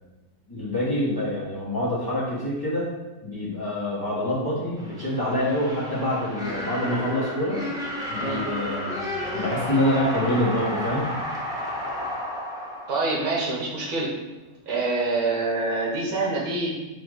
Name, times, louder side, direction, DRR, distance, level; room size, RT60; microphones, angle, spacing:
voice 1, 0.5-2.9 3.2-7.6 8.1-11.1, left 1 dB, 20° left, -8 dB, 0.9 m, -26 dB
sound 1, 4.8-13.6, left 1 dB, 5° right, 0.5 m, -32 dB
voice 2, 12.9-14.1 14.7-16.7, right 3 dB, 80° right, -3 dB, 1.4 m, -26 dB
4.1 x 2.5 x 4.7 m, 1.1 s
omnidirectional pair, 1.5 m